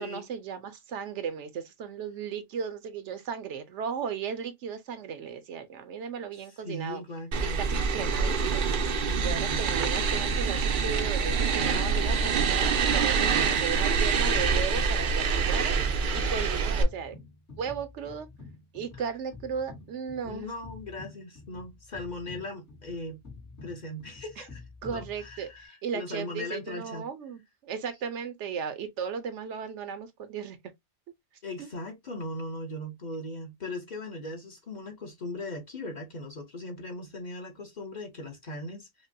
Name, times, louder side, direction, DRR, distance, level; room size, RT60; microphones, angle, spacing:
voice 1, 0.0-7.0 7.6-7.7 7.9-8.6 9.2-15.7 16.1-17.2 17.6-18.3 18.7-20.5 24.8-30.6 31.6-31.7, right 7 dB, 75° right, 0.9 m, -36 dB
voice 2, 6.6-7.8 9.1-9.6 13.2-13.7 20.2-23.2 23.6-27.1 31.4-39.1, left 1 dB, 40° left, 0.9 m, -39 dB
sound 1, 7.3-16.8, right 5 dB, 55° right, 0.6 m, -26 dB
sound 2, 10.3-25.6, left 3 dB, 60° left, 2.1 m, -48 dB
5.1 x 2.1 x 2.6 m
omnidirectional pair, 1.3 m